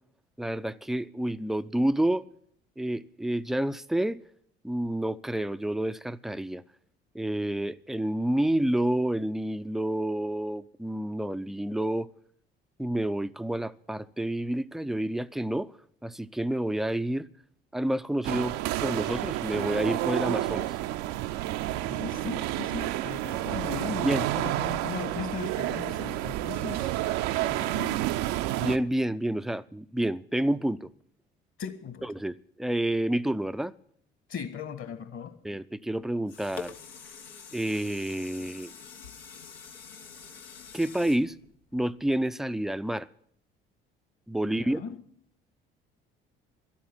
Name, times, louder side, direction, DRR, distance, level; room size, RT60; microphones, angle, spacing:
voice 1, 0.4-2.2 2.8-4.2 4.6-6.6 7.1-12.1 12.8-15.7 16.0-17.3 17.7-20.8 24.0-24.3 28.6-30.9 32.0-33.7 35.4-36.7 37.5-38.7 40.7-41.3 41.7-43.1 44.3-44.8, right 1 dB, ahead, 0.5 m, -29 dB
sound 1, 18.2-28.8, right 15 dB, 55° right, 0.6 m, -30 dB
voice 2, 21.7-27.1 27.4-28.0 31.6-32.1 34.3-35.3 44.5-45.0, left 7 dB, 45° left, 1.8 m, -38 dB
sound 2, 36.0-42.3 42.8-42.9, left 6 dB, 80° left, 1.1 m, -46 dB
12.0 x 8.7 x 9.6 m
figure-of-eight pair, 50°, 29 cm